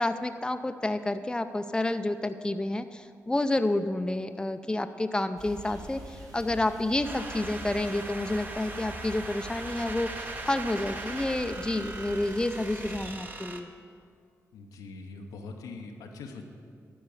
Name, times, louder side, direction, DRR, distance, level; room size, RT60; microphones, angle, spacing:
voice 1, 0.0-13.7, left 2 dB, 15° left, 9 dB, 0.5 m, -29 dB
sound 1, 5.4-13.1, equal, 65° right, 1.9 m, -45 dB
sound 2, 7.0-13.6, right 2 dB, 30° right, 1.0 m, -40 dB
voice 2, 14.5-16.4, left 3 dB, 90° left, 3 dB, 0.8 m, -42 dB
12.5 x 4.7 x 6.9 m, 2.2 s
supercardioid pair, 50°, 6 cm